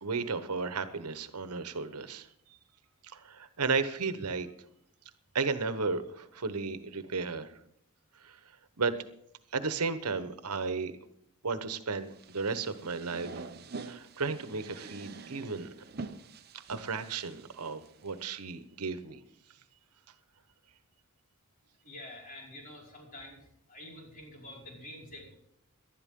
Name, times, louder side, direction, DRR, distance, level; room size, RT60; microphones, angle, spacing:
voice 1, 0.0-2.3 3.0-4.5 5.3-7.5 8.2-8.4 8.8-8.9 9.5-10.9 11.4-13.5 13.9-15.7 16.7-19.2, right 4 dB, 90° right, 11 dB, 1.1 m, -34 dB
Getting up from the office chair, 12.1-18.2, right 4 dB, 45° right, 0.9 m, -46 dB
voice 2, 21.8-25.3, left 1 dB, 40° left, -1 dB, 5.3 m, -47 dB
19.0 x 12.0 x 3.7 m, 0.70 s
head